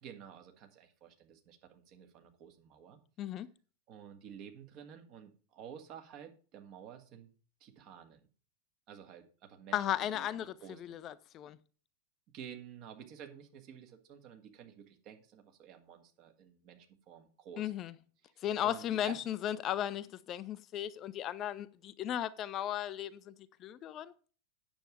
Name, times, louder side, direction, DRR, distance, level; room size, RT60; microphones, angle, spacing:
voice 1, 0.0-3.0 3.9-7.3 7.6-8.2 8.9-11.0 12.3-17.7 18.2-19.2, right 8 dB, 40° right, 1.8 m, -51 dB
voice 2, 9.7-10.5 10.9-11.6 17.6-17.9 18.4-23.3 23.6-24.1, left 11 dB, 30° left, 0.4 m, -36 dB
9.0 x 7.1 x 5.0 m
figure-of-eight pair, 90°, 0 cm